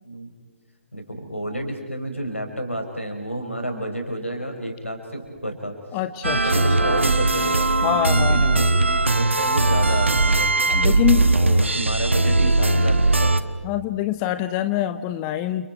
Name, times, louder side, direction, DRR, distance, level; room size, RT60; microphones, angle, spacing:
voice 1, 0.9-5.8 6.3-10.5 10.8-11.0 11.3-13.4, right 1 dB, 90° left, 2 dB, 5.6 m, -30 dB
voice 2, 5.9-6.6 7.8-8.7 10.7-11.2 13.6-15.7, left 13 dB, 20° left, 12 dB, 0.7 m, -25 dB
sound 1, 6.2-13.4, right 2 dB, 75° right, 1.2 m, -19 dB
29.5 x 28.0 x 4.6 m, 1.4 s
figure-of-eight pair, 135°, 7 cm